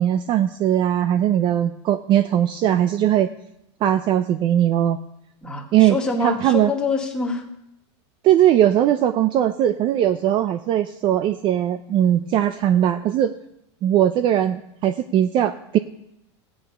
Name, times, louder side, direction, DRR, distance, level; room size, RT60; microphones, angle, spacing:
voice 1, 0.0-3.3 3.8-5.0 5.7-6.0 6.2-6.7 8.2-13.3 13.8-15.8, right 11 dB, 35° right, 12 dB, 0.5 m, -19 dB
voice 2, 5.4-7.5, left 3 dB, 5° left, -1 dB, 2.0 m, -25 dB
15.0 x 8.8 x 5.5 m, 0.82 s
supercardioid pair, 140°, 15 cm